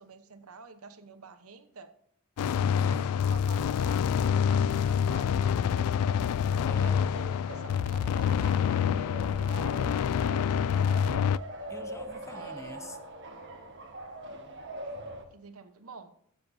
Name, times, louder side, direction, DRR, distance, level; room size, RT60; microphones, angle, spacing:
voice 1, 0.0-1.9 2.9-6.3 6.8-11.5 12.3-13.0 15.3-16.1, right 4 dB, 75° right, 1.0 m, -49 dB
sound 1, 2.4-11.4, left 8 dB, 90° left, 0.3 m, -27 dB
voice 2, 2.4-3.2 6.6-7.0 11.7-13.0, left 2 dB, 15° left, 0.8 m, -45 dB
sound 2, 6.5-15.2, right 1 dB, 55° right, 1.5 m, -42 dB
14.0 x 7.6 x 2.7 m
head